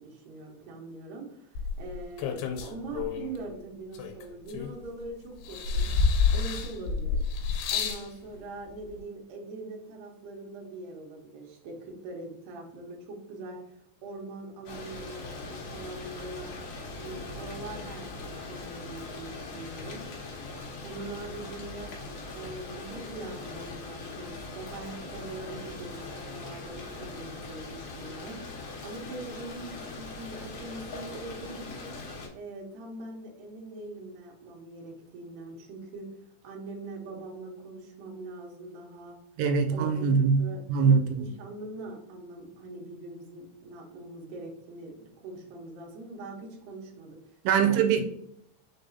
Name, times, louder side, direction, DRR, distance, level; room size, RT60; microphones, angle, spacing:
voice 1, 0.0-5.9 6.3-7.2 7.7-16.6 17.0-20.0 20.8-21.9 22.3-36.1 36.4-39.2 39.7-40.1 40.4-40.6 41.2-47.9, right 2 dB, 70° right, 2.5 m, -42 dB
sound 1, 1.6-3.4 3.9-5.0 5.4-8.1 9.0-9.1, left 5 dB, 90° left, 2.7 m, -28 dB
sound 2, 14.7-32.3, left 3 dB, 75° left, 1.6 m, -41 dB
voice 2, 39.4-41.3 47.4-48.0, right 6 dB, 90° right, 2.6 m, -23 dB
5.7 x 3.3 x 2.6 m
omnidirectional pair, 4.6 m